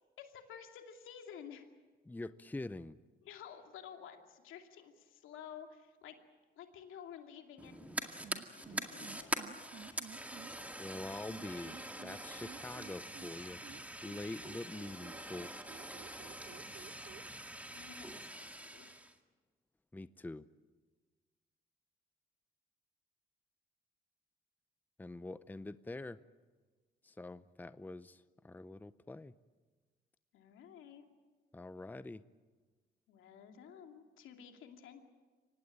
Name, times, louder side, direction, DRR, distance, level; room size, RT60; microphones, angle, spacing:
voice 1, 0.2-1.7 3.2-6.2 6.6-7.9 8.5-10.0 16.2-16.3 17.7-19.0 30.3-31.0 33.1-35.0, left 8 dB, 85° left, 4 dB, 2.6 m, -52 dB
voice 2, 2.1-3.0 10.8-13.6 14.0-15.5 19.9-20.4 25.0-26.2 27.0-29.3 31.5-32.2, left 2 dB, 10° left, 15 dB, 0.6 m, -45 dB
Fire, 7.6-19.1, right 1 dB, 5° right, 2.0 m, -44 dB
sound 1, 8.2-10.5 11.3-13.3 13.6-17.2, right 8 dB, 60° right, 1.1 m, -53 dB
24.5 x 18.5 x 8.8 m, 1.4 s
cardioid pair, 90°, 20 cm